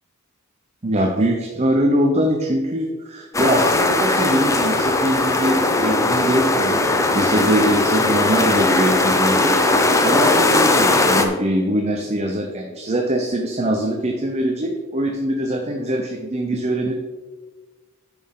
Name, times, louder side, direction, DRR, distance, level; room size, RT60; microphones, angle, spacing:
voice 1, 0.8-16.9, right 1 dB, 30° right, 2 dB, 0.7 m, -22 dB
sound 1, 3.3-11.3, left 2 dB, 15° left, 0.6 m, -18 dB
9.0 x 6.3 x 3.8 m, 1.4 s
head